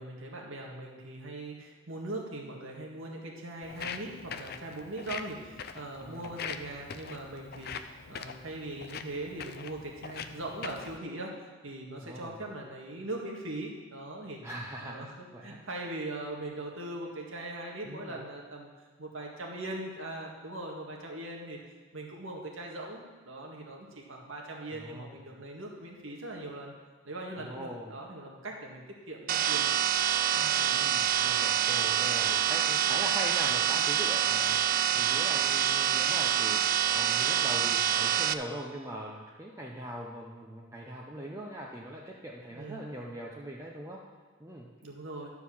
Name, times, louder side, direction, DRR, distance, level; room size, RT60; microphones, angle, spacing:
voice 1, 0.0-11.3 11.6-14.4 14.8-18.7 19.0-21.6 21.9-26.7 27.0-30.0 30.3-30.7 34.4-34.6 42.5-42.9 44.8-45.3, right 2 dB, 80° right, -1 dB, 1.8 m, -40 dB
Walk footsteps, 3.6-11.0, left 6 dB, 50° left, 0.5 m, -42 dB
voice 2, 6.0-6.4 12.0-12.4 14.4-15.6 17.8-18.2 24.7-25.4 27.4-28.0 30.7-44.0 44.4-44.7, equal, 15° right, -3 dB, 0.7 m, -41 dB
sound 1, 29.3-38.3, right 10 dB, 45° right, 0.3 m, -26 dB
12.5 x 4.7 x 7.1 m, 1.4 s
head